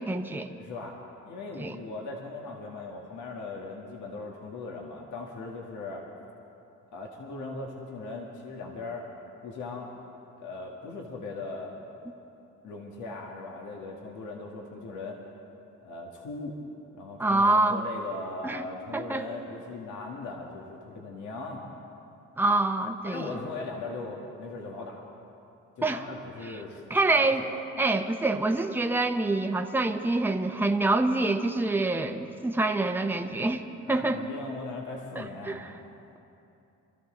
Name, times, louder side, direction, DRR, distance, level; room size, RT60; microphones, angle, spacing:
voice 1, 0.1-0.5 1.6-1.8 17.2-17.8 18.4-18.6 18.9-19.2 22.4-23.4 25.8-26.0 26.9-27.4 27.8-34.2 35.2-35.7, right 2 dB, 5° right, 5 dB, 0.8 m, -26 dB
voice 2, 0.6-0.9 1.2-6.0 6.9-9.1 9.4-9.9 10.4-11.7 12.6-15.2 15.8-16.6 17.0-21.6 23.0-25.0 25.8-27.6 33.8-35.7, left 3 dB, 80° left, -1 dB, 1.8 m, -39 dB
25.5 x 13.5 x 3.9 m, 2.8 s
cardioid pair, 90°, 30 cm